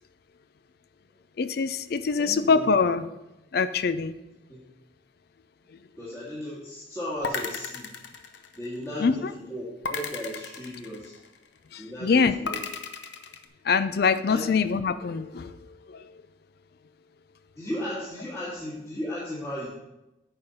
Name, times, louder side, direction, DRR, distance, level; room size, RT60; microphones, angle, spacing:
voice 1, 1.4-3.1 3.5-4.1 9.0-9.3 11.7-12.4 13.6-16.2, left 5 dB, 55° left, 13 dB, 0.4 m, -24 dB
voice 2, 2.2-2.7 4.5-4.6 6.0-7.9 8.6-11.2 11.8-12.6 14.2-14.5 17.6-19.8, equal, 15° left, -10 dB, 2.0 m, -35 dB
sound 1, 7.2-9.0 9.8-11.5 12.5-13.4, left 5 dB, 70° left, 0.8 m, -35 dB
8.9 x 5.6 x 5.2 m, 0.95 s
head